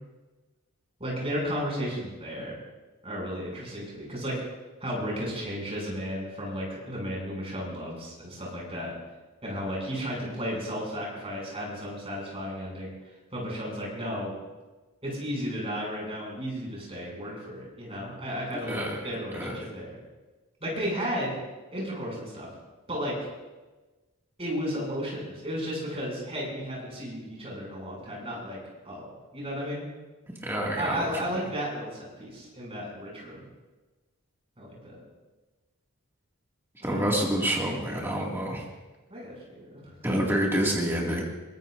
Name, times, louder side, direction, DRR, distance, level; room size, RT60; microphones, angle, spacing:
voice 1, 1.0-2.6 3.0-4.4 4.8-8.9 9.4-12.9 13.3-14.4 15.0-20.0 20.6-21.4 21.7-22.5 22.9-23.1 24.4-28.6 28.8-29.9 30.8-33.5 34.6-35.0 36.8-37.0 39.1-40.2, equal, 25° right, -3 dB, 7.1 m, -34 dB
voice 2, 18.7-19.0 19.3-19.5 30.4-31.1 36.8-38.6 40.0-41.2, equal, 10° right, -3 dB, 2.3 m, -27 dB
23.0 x 19.5 x 2.7 m, 1.2 s
head